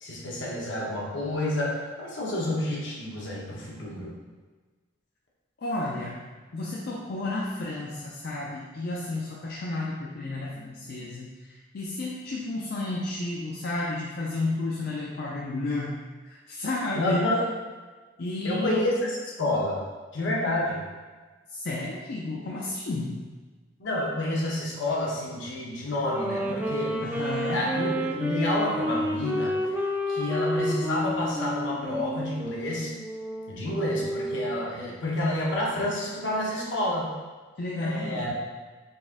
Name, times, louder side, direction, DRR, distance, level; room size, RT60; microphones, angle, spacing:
voice 1, 0.0-4.1 16.9-17.4 18.4-19.8 20.1-20.8 23.8-27.0 27.5-29.5 30.1-32.9 33.5-37.1 37.8-38.3, left 1 dB, 70° left, -4 dB, 1.0 m, -29 dB
voice 2, 5.6-6.2 6.5-11.3 11.7-16.0 16.5-17.3 18.2-18.9 21.5-23.2 27.0-27.7 37.6-38.3, left 2 dB, 55° left, -5 dB, 0.5 m, -32 dB
Wind instrument woodwind instrument, 26.0-34.7, equal, 10° right, 0.4 m, -30 dB
4.1 x 2.6 x 3.6 m, 1.3 s
head